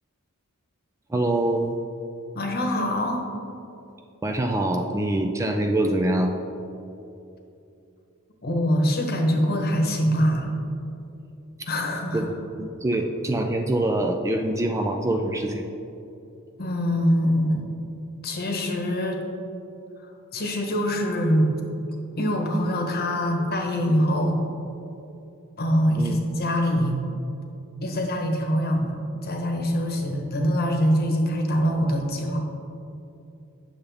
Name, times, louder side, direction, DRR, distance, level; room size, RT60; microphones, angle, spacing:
voice 1, 1.1-1.8 4.2-6.4 12.1-15.6 26.0-26.2, right 1 dB, 15° right, 3 dB, 0.4 m, -24 dB
voice 2, 2.3-3.3 8.4-10.5 11.7-12.3 16.6-17.6 18.2-19.2 20.3-21.5 22.2-24.4 25.6-27.0 27.8-32.4, equal, 45° left, 3 dB, 1.0 m, -24 dB
8.7 x 6.8 x 3.4 m, 2.8 s
head